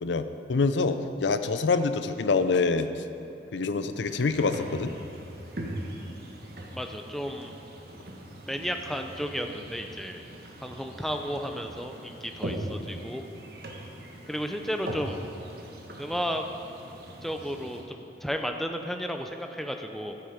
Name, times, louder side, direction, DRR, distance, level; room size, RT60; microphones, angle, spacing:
voice 1, 0.0-3.0 3.5-4.9, left 4 dB, 85° left, 10 dB, 0.5 m, -26 dB
sound 1, 4.0-17.8, right 1 dB, 55° right, 1.4 m, -41 dB
voice 2, 6.7-7.6 8.4-10.2 10.6-13.2 14.3-15.2 16.0-16.4 17.2-18.0 18.2-20.1, equal, ahead, 4 dB, 0.5 m, -33 dB
12.5 x 8.8 x 5.1 m, 2.8 s
head